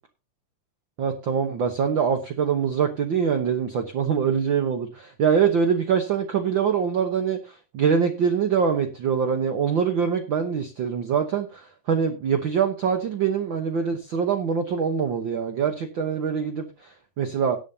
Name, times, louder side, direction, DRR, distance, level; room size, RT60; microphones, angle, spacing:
voice 1, 1.0-17.6, right 7 dB, 60° right, 1.3 m, -24 dB
18.0 x 9.1 x 2.7 m
omnidirectional pair, 3.3 m